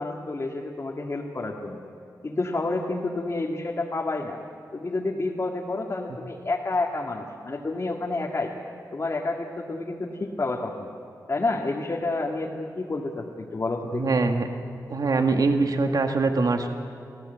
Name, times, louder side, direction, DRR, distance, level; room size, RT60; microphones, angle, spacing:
voice 1, 0.0-1.8 2.2-4.4 4.7-8.5 8.9-10.9 11.3-14.0, left 2 dB, 40° left, -2 dB, 1.9 m, -29 dB
voice 2, 13.9-14.5 14.9-16.7, right 3 dB, 65° right, 5 dB, 1.7 m, -23 dB
26.0 x 16.5 x 8.0 m, 2.6 s
wide cardioid pair, 95°, 7 cm